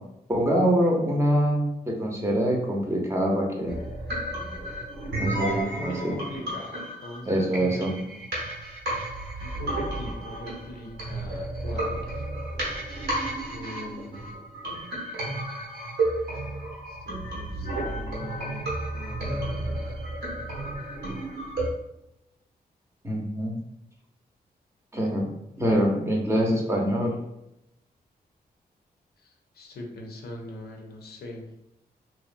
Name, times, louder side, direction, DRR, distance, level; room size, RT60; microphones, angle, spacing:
voice 1, 0.3-3.8 5.2-6.1 7.3-7.9 23.0-23.6 24.9-25.3 25.6-27.1, equal, 15° right, -1 dB, 0.7 m, -24 dB
sound 1, 3.7-21.7, right 1 dB, 85° right, 0.9 m, -32 dB
voice 2, 5.1-6.7 7.0-8.3 9.0-12.3 13.5-14.3 16.9-19.8 25.5-25.8 29.2-31.4, left 2 dB, 75° left, 1 dB, 0.5 m, -41 dB
2.7 x 2.1 x 2.5 m, 0.85 s
cardioid pair, 75°, 16 cm